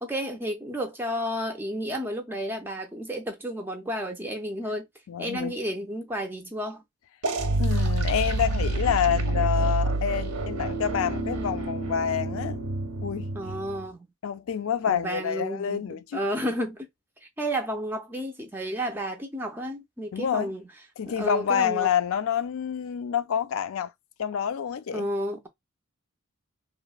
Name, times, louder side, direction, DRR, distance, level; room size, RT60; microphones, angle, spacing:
voice 1, 0.0-4.9 5.2-6.8 13.3-14.1 14.9-16.9 17.2-20.6 21.1-21.9 24.9-25.5, equal, 10° right, 0.3 m, -32 dB
voice 2, 5.1-5.5 7.6-12.6 13.0-13.3 14.2-16.2 20.1-20.5 21.0-23.9 24.2-25.1, left 8 dB, 75° left, 0.4 m, -27 dB
sound 1, 7.2-13.8, right 2 dB, 90° right, 0.7 m, -28 dB
3.0 x 2.0 x 2.3 m
head